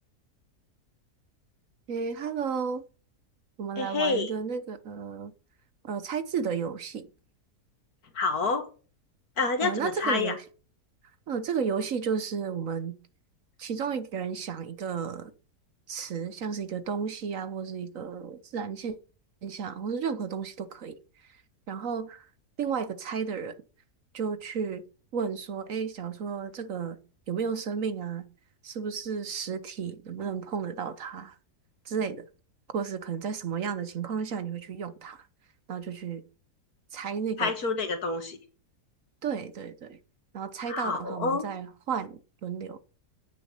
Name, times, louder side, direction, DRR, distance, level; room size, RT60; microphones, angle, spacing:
voice 1, 1.9-2.8 3.6-5.3 5.8-7.1 9.6-10.4 11.3-13.0 13.6-15.3 15.9-19.0 19.4-21.0 21.3-21.4 21.7-22.3 22.6-23.6 24.1-24.8 25.1-27.0 27.3-28.3 28.6-31.4 31.8-32.3 32.7-35.3 35.7-36.3 36.9-37.5 39.2-40.0 40.3-42.8, right 6 dB, 60° right, 1.2 m, -33 dB
voice 2, 3.8-4.3 8.1-8.7 9.4-10.3 37.4-38.4 40.7-41.5, left 4 dB, 65° left, 2.3 m, -28 dB
9.3 x 6.9 x 8.7 m
omnidirectional pair, 1.7 m